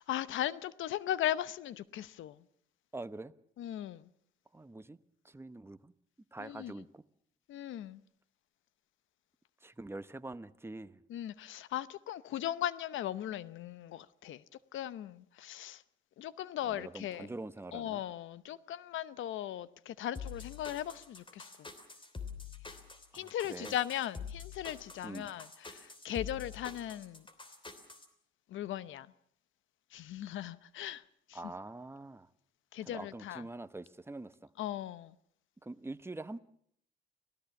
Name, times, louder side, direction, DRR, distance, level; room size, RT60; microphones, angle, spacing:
voice 1, 0.0-2.4 3.6-4.1 6.4-6.7 7.5-8.0 11.1-14.4 14.7-15.8 16.2-17.3 17.7-21.7 22.7-22.8 23.1-27.3 28.5-29.1 29.9-31.0 31.3-31.4 32.7-33.4 34.6-35.1, left 12 dB, 80° left, 0.8 m, -38 dB
voice 2, 2.9-3.3 4.5-5.0 5.2-5.9 6.3-7.0 9.6-11.0 16.6-18.0 23.1-23.7 25.0-25.3 31.3-32.3 32.8-34.5 35.6-36.4, right 2 dB, 10° right, 0.9 m, -45 dB
sound 1, 20.1-28.1, left 5 dB, 25° left, 3.1 m, -46 dB
26.0 x 18.0 x 7.1 m
cardioid pair, 90°, 20 cm